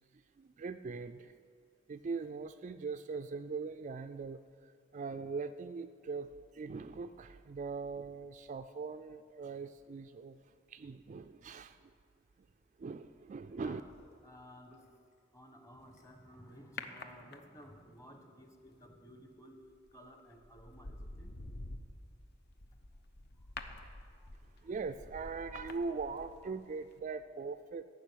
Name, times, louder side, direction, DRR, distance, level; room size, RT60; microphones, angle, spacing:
voice 1, 0.1-1.4 1.9-11.9 12.8-13.8 24.4-27.8, right 4 dB, 40° right, 9 dB, 0.3 m, -41 dB
sound 1, 13.5-17.5, equal, 35° left, 2.3 m, -69 dB
voice 2, 14.2-14.9 15.3-19.6 19.9-21.3 23.8-23.9 24.2-24.3, equal, 15° left, 5 dB, 1.1 m, -55 dB
sound 2, 16.8-17.8 19.7-19.9 20.4-26.6 26.9-27.0, left 3 dB, 55° left, 0.8 m, -48 dB
14.5 x 6.2 x 9.1 m, 2.1 s
head